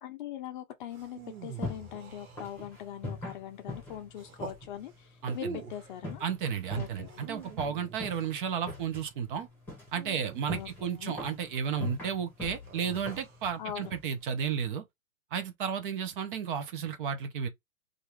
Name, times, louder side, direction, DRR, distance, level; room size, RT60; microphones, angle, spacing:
voice 1, 0.0-6.2 6.8-7.2 10.5-11.2 13.6-13.9, left 11 dB, 35° left, 0.5 m, -42 dB
sound 1, 0.9-2.9 4.1-4.6 5.3-6.0 7.0-8.4 9.9-11.1 12.7-13.4, right 5 dB, 90° right, 1.2 m, -45 dB
sound 2, 1.2-14.6, left 2 dB, 5° left, 1.0 m, -44 dB
voice 2, 5.2-5.6 6.2-9.5 9.9-14.8 15.3-17.5, right 7 dB, 40° right, 0.6 m, -33 dB
2.7 x 2.5 x 3.1 m
hypercardioid pair, 135°, 42 cm